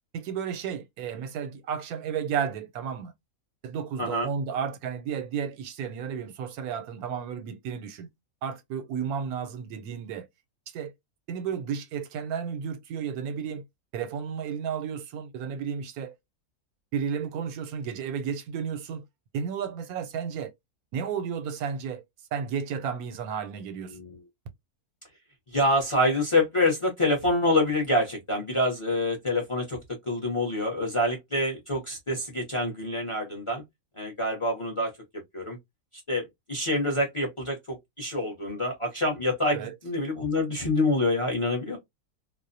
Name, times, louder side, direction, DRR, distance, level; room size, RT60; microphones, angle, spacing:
voice 1, 0.1-3.1 3.6-8.1 8.4-10.3 10.7-10.9 11.3-13.6 13.9-16.2 16.9-19.0 19.3-20.5 20.9-22.0 22.3-24.0 39.5-39.7, right 7 dB, 85° right, 1.1 m, -32 dB
voice 2, 25.5-29.8 30.1-33.6 34.0-34.9 35.3-35.6 36.1-41.8, left 1 dB, 30° left, 0.6 m, -26 dB
2.4 x 2.0 x 2.5 m
omnidirectional pair, 1.5 m